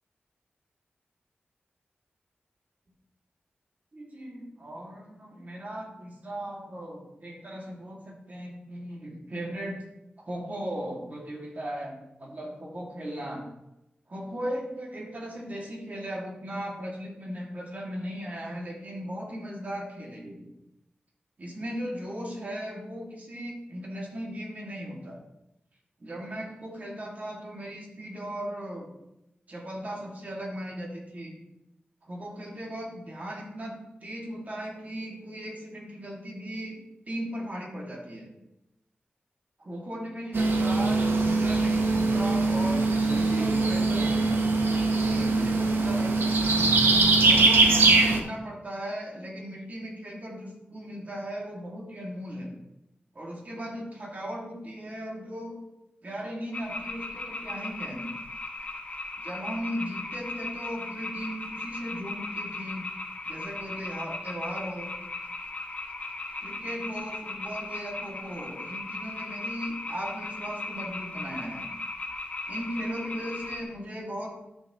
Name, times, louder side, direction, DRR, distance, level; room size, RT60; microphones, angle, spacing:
voice 1, 3.9-9.8 10.2-13.5 14.1-20.5 21.4-25.2 26.0-28.9 29.5-31.4 32.0-36.8 37.0-38.3 39.6-44.5 44.9-46.5 47.2-52.5 53.1-55.6 56.0-58.1 59.2-62.9 63.3-64.9 66.4-71.7 72.5-74.3, equal, 45° right, -3 dB, 2.6 m, -37 dB
sound 1, 40.3-48.2, right 3 dB, 80° right, 1.1 m, -22 dB
sound 2, 56.5-73.6, left 3 dB, 40° left, 1.3 m, -37 dB
12.0 x 6.2 x 3.2 m, 0.88 s
wide cardioid pair, 90°, 4 cm